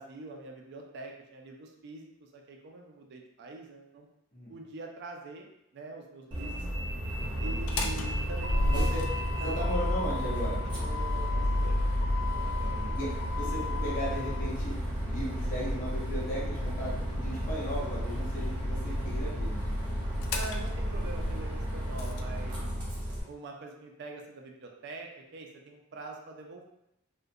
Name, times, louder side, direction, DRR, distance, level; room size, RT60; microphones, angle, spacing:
voice 1, 0.0-4.1 4.5-6.6 7.4-8.9 9.4-9.6 10.8-11.9 12.4-12.8 18.8-19.2 20.3-22.7 23.3-26.6, right 3 dB, 55° right, 1 dB, 0.3 m, -44 dB
Bus, 6.3-23.2, equal, 25° right, 0.7 m, -34 dB
voice 2, 7.4-7.9 8.7-9.0 9.4-10.6 12.6-13.0 13.3-14.7 15.1-19.7, equal, 40° left, -6 dB, 0.8 m, -37 dB
Motor vehicle (road), 7.5-22.2, left 1 dB, 80° left, 0.3 m, -33 dB
2.4 x 2.1 x 2.6 m, 0.85 s
head